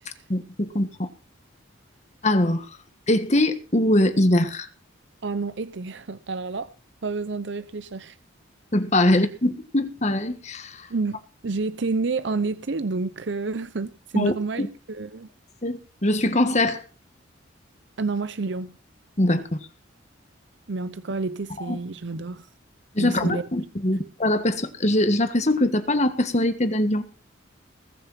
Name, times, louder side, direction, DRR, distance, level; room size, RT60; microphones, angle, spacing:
voice 1, 0.3-1.1 2.2-2.7 3.1-4.7 8.7-10.9 14.1-14.3 14.6-14.7 15.6-16.8 19.2-19.6 21.6-21.8 22.9-27.1, left 1 dB, 35° left, 1.6 m, -22 dB
voice 2, 5.2-6.7 7.0-8.2 9.1-9.3 10.9-15.3 18.0-18.7 20.7-22.5 23.0-23.4 23.9-24.0, right 3 dB, 60° right, 0.7 m, -29 dB
20.5 x 6.8 x 5.7 m
head